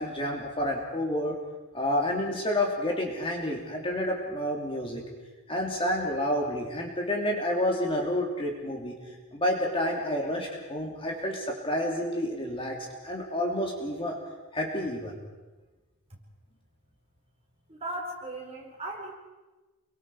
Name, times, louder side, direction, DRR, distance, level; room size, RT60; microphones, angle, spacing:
voice 1, 0.0-1.4 1.7-5.0 5.5-9.0 9.3-12.8 13.0-14.1 14.5-15.2, left 1 dB, 25° left, 0 dB, 2.9 m, -29 dB
voice 2, 17.7-19.1, right 1 dB, 25° right, -2 dB, 5.1 m, -37 dB
28.5 x 23.5 x 4.8 m, 1.2 s
head